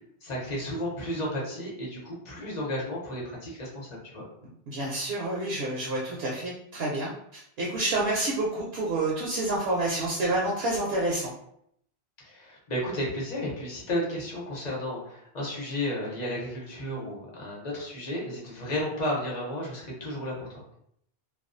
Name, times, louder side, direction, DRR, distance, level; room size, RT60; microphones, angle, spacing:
voice 1, 0.2-4.2 12.2-20.5, left 1 dB, 45° left, -4 dB, 0.9 m, -33 dB
voice 2, 4.7-11.3, right 2 dB, 70° right, -4 dB, 0.7 m, -28 dB
2.3 x 2.2 x 2.5 m, 0.71 s
omnidirectional pair, 1.1 m